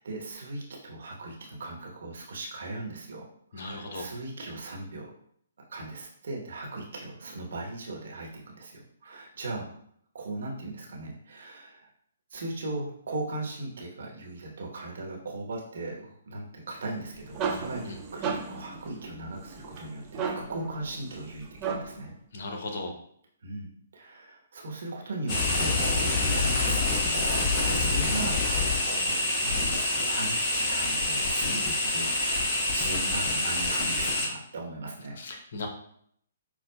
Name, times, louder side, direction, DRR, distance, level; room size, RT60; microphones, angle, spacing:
voice 1, 0.0-3.2 3.5-5.1 5.7-9.7 10.1-11.9 12.3-22.1 23.4-35.2, right 2 dB, 60° right, -1 dB, 1.0 m, -38 dB
voice 2, 3.5-4.1 17.5-18.0 22.3-22.9 31.5-31.6 35.2-35.7, left 2 dB, 55° left, 3 dB, 0.8 m, -37 dB
sound 1, 16.9-22.1, right 5 dB, 25° right, 0.4 m, -35 dB
sound 2, 25.3-34.3, left 2 dB, 30° left, 1.0 m, -26 dB
6.1 x 2.2 x 2.3 m, 0.66 s
figure-of-eight pair, 130°, 0 cm